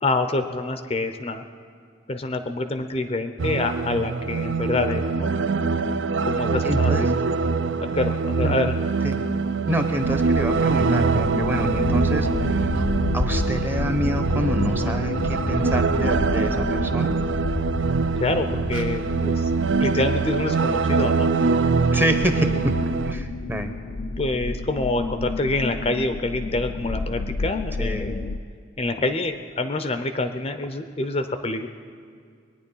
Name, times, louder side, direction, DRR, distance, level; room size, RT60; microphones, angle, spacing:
voice 1, 0.0-1.4 2.1-5.3 6.2-7.1 7.9-8.8 18.2-19.5 19.8-21.4 22.4-22.5 24.2-28.3 28.8-31.7, left 2 dB, 30° left, 8 dB, 0.5 m, -26 dB
sound 1, 3.4-23.1, right 4 dB, 70° right, 0.5 m, -23 dB
voice 2, 6.6-7.2 8.4-8.6 9.0-9.3 9.7-12.7 13.1-17.2 21.9-22.5 23.0-23.7 27.8-28.2, equal, 10° right, 7 dB, 0.7 m, -28 dB
sound 2, 9.6-10.8 12.2-14.3 14.7-16.2 17.7-17.8 18.2-18.4 18.7-18.8, right 2 dB, 85° right, 1.8 m, -45 dB
sound 3, 10.0-28.4, left 3 dB, 80° left, 0.6 m, -30 dB
22.0 x 9.5 x 5.5 m, 2.1 s
head